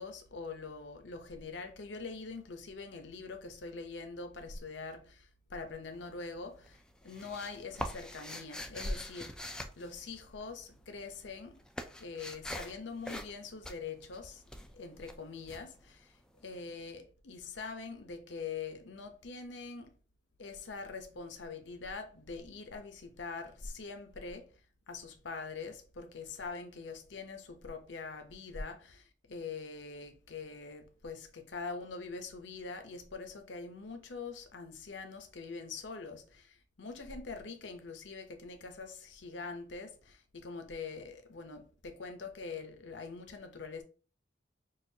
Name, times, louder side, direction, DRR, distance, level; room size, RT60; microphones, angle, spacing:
voice 1, 0.0-11.6 12.0-14.4 14.7-20.0 20.4-24.5 24.9-43.8, left 4 dB, 70° left, 0.7 m, -43 dB
sound 1, 5.8-6.4 6.7-10.7 11.0-16.6, left 1 dB, 5° left, 0.3 m, -44 dB
6.4 x 2.5 x 2.7 m
head